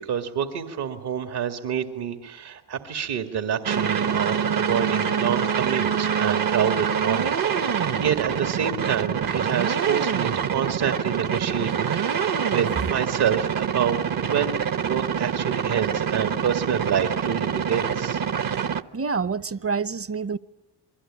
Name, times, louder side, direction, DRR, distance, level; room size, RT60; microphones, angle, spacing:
voice 1, 0.0-12.2 12.5-14.0 14.3-18.2, right 8 dB, 70° right, 2.1 m, -27 dB
sound 1, 3.6-18.8, right 7 dB, 55° right, 1.2 m, -25 dB
voice 2, 18.9-20.4, right 5 dB, 35° right, 0.9 m, -27 dB
28.5 x 22.5 x 8.9 m
supercardioid pair, 50°, 41 cm